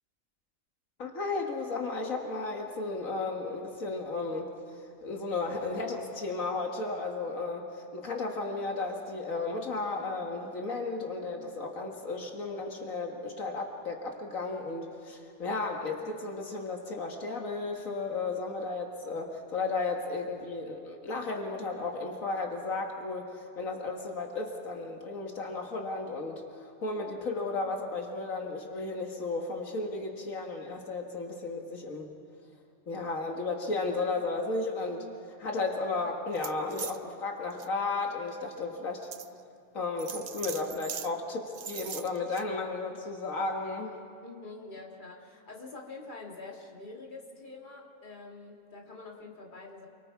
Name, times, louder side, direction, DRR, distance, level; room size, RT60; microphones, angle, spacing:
voice 1, 1.0-32.1 32.9-39.1 39.7-44.0, left 3 dB, 85° left, 2 dB, 2.1 m, -34 dB
sound 1, 36.3-37.0 37.5-37.7 38.3-38.4 39.1-39.3 40.0-41.1 41.5-42.4, right 7 dB, 50° right, 0.5 m, -40 dB
voice 2, 44.2-49.9, left 3 dB, 35° left, -2 dB, 2.6 m, -46 dB
28.5 x 23.5 x 4.7 m, 2.3 s
omnidirectional pair, 1.4 m